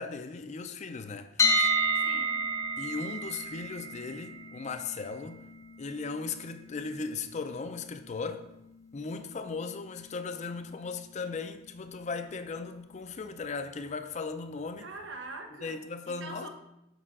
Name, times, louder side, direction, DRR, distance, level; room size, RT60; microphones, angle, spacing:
voice 1, 0.0-1.8 2.8-5.5 5.8-8.5 8.9-14.9 15.6-16.5, left 4 dB, 40° left, 0.4 m, -37 dB
sound 1, 1.4-13.3, equal, 15° left, 0.7 m, -34 dB
voice 2, 1.9-2.4 14.8-15.8 16.0-16.5, right 2 dB, 90° right, 1.0 m, -43 dB
6.5 x 4.9 x 3.7 m
head